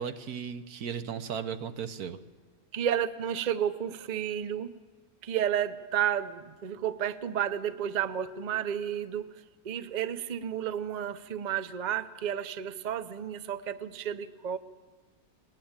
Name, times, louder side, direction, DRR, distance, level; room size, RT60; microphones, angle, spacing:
voice 1, 0.0-2.2, right 7 dB, 85° right, 11 dB, 1.5 m, -36 dB
voice 2, 2.7-4.7 5.2-9.3 9.6-14.6, right 9 dB, 40° right, 13 dB, 0.7 m, -31 dB
20.5 x 18.0 x 8.8 m, 1.4 s
omnidirectional pair, 1.6 m